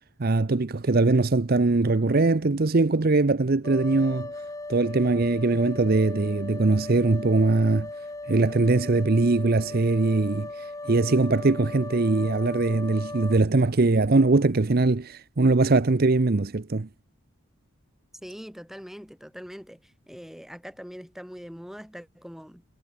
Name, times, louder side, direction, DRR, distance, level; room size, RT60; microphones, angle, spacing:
voice 1, 0.2-4.3 4.7-7.9 8.3-10.5 10.9-16.9, right 3 dB, 45° right, 0.7 m, -21 dB
sound 1, 3.6-13.4, left 2 dB, 15° left, 1.1 m, -38 dB
voice 2, 18.2-22.6, equal, ahead, 2.8 m, -42 dB
head